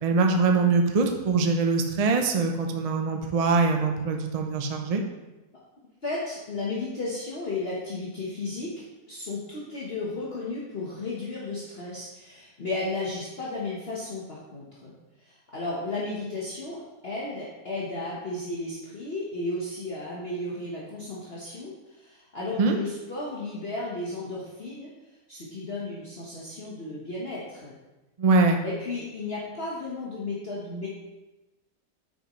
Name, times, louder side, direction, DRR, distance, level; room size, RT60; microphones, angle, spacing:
voice 1, 0.0-5.0 22.6-22.8 28.2-28.6, right 4 dB, 60° right, 4 dB, 0.3 m, -23 dB
voice 2, 6.0-8.7 9.1-14.9 15.2-21.7 22.0-24.9 25.3-27.8 28.6-30.9, left 2 dB, 40° left, -6 dB, 1.3 m, -34 dB
9.1 x 6.5 x 3.1 m, 1.0 s
omnidirectional pair, 1.8 m